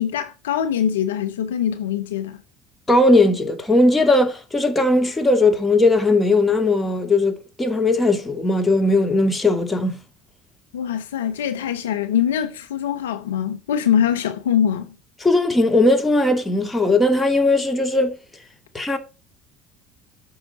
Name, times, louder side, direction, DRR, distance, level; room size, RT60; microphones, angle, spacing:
voice 1, 0.0-2.4 10.7-14.9, left 9 dB, 80° left, 0.9 m, -23 dB
voice 2, 2.9-7.3 7.6-10.0 15.2-18.2 18.7-19.0, left 2 dB, 15° left, 2.5 m, -18 dB
8.6 x 5.8 x 5.7 m
hypercardioid pair, 65°, 0 cm